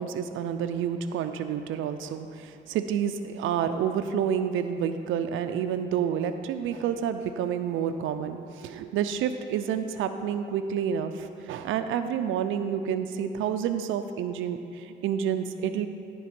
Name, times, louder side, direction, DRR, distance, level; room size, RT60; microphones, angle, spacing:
voice 1, 0.0-15.9, right 8 dB, 85° right, 8 dB, 0.5 m, -29 dB
13.0 x 4.6 x 6.0 m, 2.5 s
cardioid pair, 90°, 20 cm